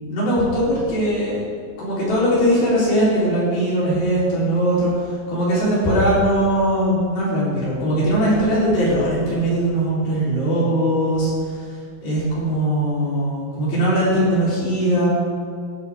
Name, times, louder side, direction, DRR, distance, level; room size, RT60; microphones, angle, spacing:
voice 1, 0.1-1.5 1.8-11.7 12.0-15.1, right 1 dB, 75° left, -8 dB, 6.2 m, -20 dB
18.0 x 12.5 x 3.8 m, 2.2 s
omnidirectional pair, 4.3 m